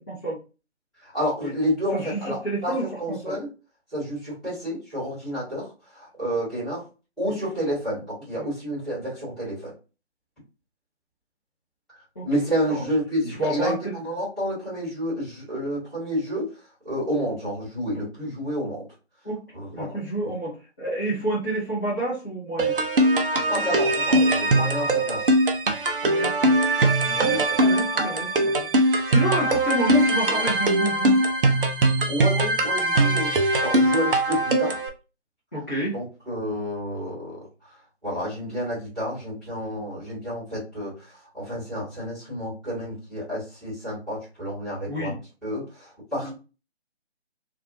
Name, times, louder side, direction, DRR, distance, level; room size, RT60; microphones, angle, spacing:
voice 1, 0.1-0.4 1.4-1.5 1.9-2.2 2.4-3.4 8.4-8.5 12.1-12.2 12.7-12.8 13.4-13.9 17.9-18.1 19.2-19.4 19.7-22.8 26.0-26.6 27.2-28.7 29.1-31.2 35.5-36.0 44.9-45.1 46.2-46.3, right 1 dB, 15° left, -12 dB, 0.7 m, -29 dB
voice 2, 1.0-2.7 3.0-3.5 3.9-6.8 7.2-9.7 11.9-18.9 19.5-20.3 23.5-25.3 27.0-27.7 32.1-34.8 35.9-45.2 45.4-46.3, equal, ahead, -17 dB, 1.1 m, -30 dB
sound 1, 22.6-34.9, right 1 dB, 50° right, 0.5 m, -21 dB
2.6 x 2.4 x 2.6 m, 0.31 s
figure-of-eight pair, 155°, 34 cm